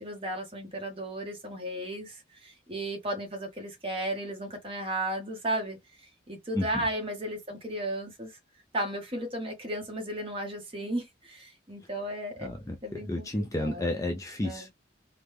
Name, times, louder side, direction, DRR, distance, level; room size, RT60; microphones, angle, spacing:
voice 1, 0.0-5.8 6.3-8.3 8.7-12.5 12.8-13.3 13.6-14.0 14.4-14.7, right 1 dB, 30° right, 1.0 m, -34 dB
voice 2, 6.5-6.8 12.4-14.7, left 1 dB, 15° left, 0.4 m, -32 dB
3.1 x 2.0 x 3.4 m
head